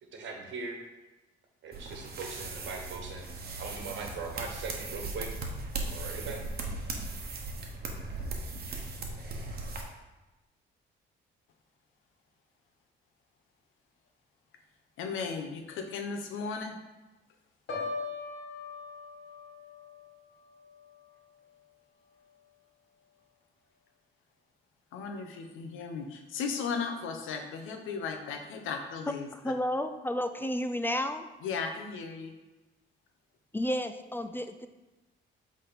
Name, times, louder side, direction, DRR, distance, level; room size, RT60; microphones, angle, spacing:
voice 1, 0.1-0.8 1.6-3.3 3.6-5.4 5.8-6.4, right 4 dB, 70° right, 2 dB, 1.3 m, -40 dB
sound 1, 1.7-9.8, right 3 dB, 50° right, 1.1 m, -38 dB
voice 2, 15.0-16.8 24.9-29.5 31.4-32.3, left 5 dB, 90° left, 5 dB, 0.8 m, -36 dB
Piano, 17.7-21.6 22.0-22.4, left 4 dB, 65° left, 1.7 m, -41 dB
voice 3, 29.3-31.3 33.5-34.7, left 1 dB, 10° left, 8 dB, 0.4 m, -31 dB
7.6 x 3.6 x 4.1 m, 1.1 s
cardioid pair, 90°, 20 cm